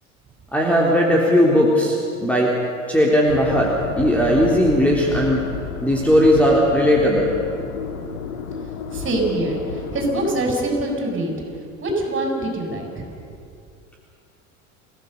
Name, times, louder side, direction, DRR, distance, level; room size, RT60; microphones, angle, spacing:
voice 1, 0.5-2.5 2.9-5.4 5.8-7.3, equal, 5° left, -3 dB, 3.7 m, -17 dB
sound 1, 3.3-10.5, left 6 dB, 85° left, 1.7 m, -31 dB
voice 2, 8.9-9.6 9.9-11.3 11.8-13.1, right 1 dB, 30° right, 1 dB, 7.2 m, -24 dB
29.0 x 16.5 x 6.8 m, 2.5 s
hypercardioid pair, 80°, 40 cm